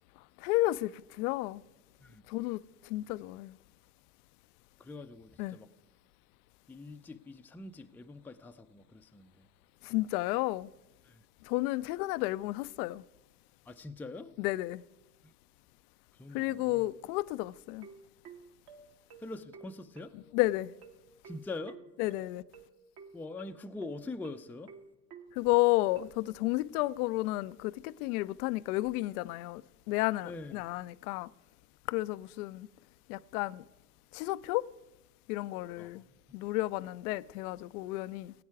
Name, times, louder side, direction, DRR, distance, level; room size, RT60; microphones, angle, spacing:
voice 1, 0.4-1.6 2.3-3.6 5.4-5.6 9.8-10.7 11.4-13.0 14.4-14.8 16.3-17.9 20.3-20.7 22.0-22.4 25.3-29.6 29.9-31.3 31.9-32.7 33.1-33.6 34.1-34.6 35.3-36.0 36.3-38.3, left 19 dB, 70° left, 0.5 m, -32 dB
voice 2, 4.8-5.7 6.7-9.5 11.0-11.2 13.7-14.3 15.2-15.3 16.1-16.9 19.2-20.2 21.2-21.8 23.1-24.7 30.2-30.6 35.8-36.1, left 3 dB, 5° left, 0.4 m, -44 dB
sound 1, 17.8-26.1, right 5 dB, 55° right, 1.8 m, -52 dB
16.5 x 8.7 x 4.7 m
hypercardioid pair, 75°, 47 cm